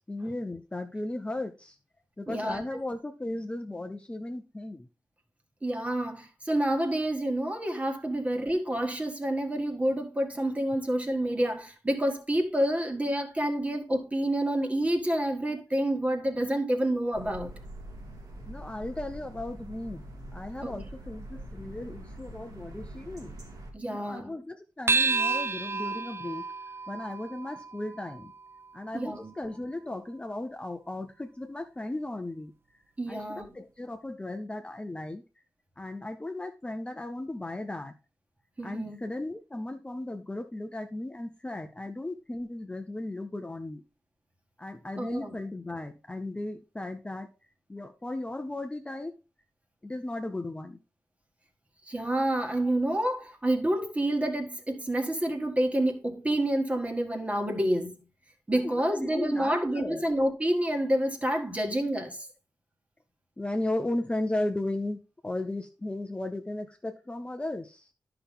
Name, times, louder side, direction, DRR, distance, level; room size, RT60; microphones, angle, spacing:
voice 1, 0.1-1.8 2.2-4.9 18.5-20.0 20.3-23.4 23.9-26.4 26.9-28.3 28.7-32.5 33.1-35.2 35.8-37.9 38.6-43.8 44.6-47.3 47.7-49.2 49.8-50.8 58.5-60.0 63.4-67.9, left 1 dB, 15° left, 0.6 m, -36 dB
voice 2, 2.3-2.8 5.6-17.5 20.6-20.8 23.7-24.3 28.9-29.3 33.0-33.5 38.6-39.0 45.0-45.3 51.8-58.0 58.5-62.3, right 1 dB, 20° right, 1.7 m, -28 dB
sound 1, 17.1-23.7, right 1 dB, 75° right, 2.8 m, -44 dB
sound 2, 24.9-29.6, right 4 dB, 35° right, 0.5 m, -31 dB
11.0 x 5.8 x 3.6 m
wide cardioid pair, 100°, 7 cm